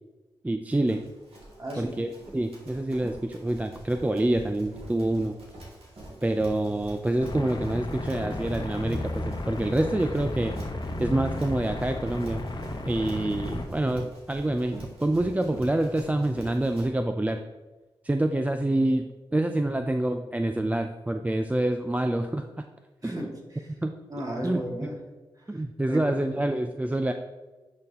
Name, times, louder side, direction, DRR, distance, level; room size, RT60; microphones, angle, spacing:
voice 1, 0.4-1.0 1.8-5.4 6.2-10.6 11.0-12.5 12.8-17.4 18.0-22.5 23.0-23.3 23.8-23.9 24.4-24.6 25.5-27.1, right 1 dB, 15° right, 6 dB, 0.4 m, -27 dB
Run, 0.7-16.9, right 1 dB, 90° right, 2.4 m, -44 dB
voice 2, 1.6-1.9 23.0-23.7 24.1-25.0 25.5-25.6 25.9-26.1, equal, 40° right, -1 dB, 2.2 m, -34 dB
sound 1, 7.2-13.6, left 1 dB, 50° left, 1.0 m, -34 dB
10.5 x 4.2 x 3.6 m, 1.2 s
cardioid pair, 55°, 10 cm